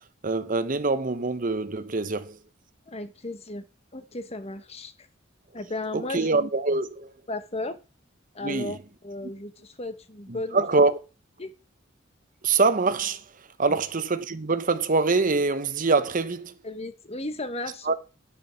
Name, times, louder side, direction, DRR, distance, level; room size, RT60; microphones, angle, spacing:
voice 1, 0.2-2.4 5.9-7.1 8.4-8.8 10.3-11.0 12.4-13.2 13.6-16.5 17.8-17.9, right 3 dB, 40° right, 0.9 m, -24 dB
voice 2, 2.9-3.7 3.9-5.1 5.5-6.3 7.3-7.8 8.3-8.8 9.0-10.6 11.4-11.5 13.7-13.8 16.6-17.9, left 2 dB, 30° left, 1.1 m, -35 dB
9.3 x 6.3 x 6.8 m
head